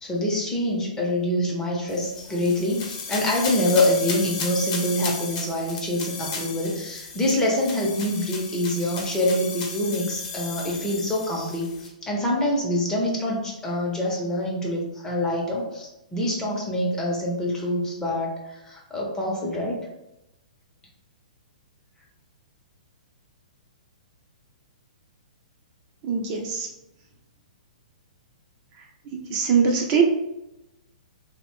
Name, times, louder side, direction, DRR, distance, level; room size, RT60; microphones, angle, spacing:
voice 1, 0.0-18.4 18.7-19.8, left 1 dB, 15° left, -2 dB, 0.6 m, -25 dB
sound 1, 1.9-11.9, left 4 dB, 45° left, 0.8 m, -34 dB
voice 2, 26.0-26.7 29.1-30.0, right 6 dB, 35° right, 1 dB, 0.5 m, -22 dB
2.8 x 2.1 x 3.1 m, 0.90 s
hypercardioid pair, 135°, 4 cm